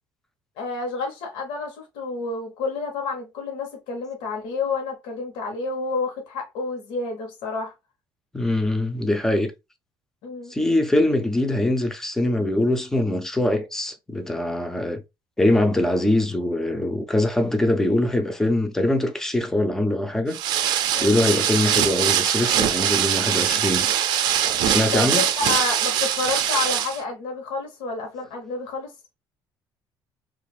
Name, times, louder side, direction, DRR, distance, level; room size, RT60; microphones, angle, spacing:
voice 1, 0.6-7.7 10.2-10.5 20.9-21.2 24.9-28.9, left 4 dB, 80° left, 1.0 m, -29 dB
voice 2, 8.3-9.5 10.5-15.0 15.4-20.4 21.0-23.9 24.6-25.2, left 1 dB, 5° left, 0.4 m, -23 dB
sound 1, 20.3-27.0, right 10 dB, 60° right, 0.4 m, -22 dB
2.9 x 2.4 x 3.2 m
cardioid pair, 170°, 8 cm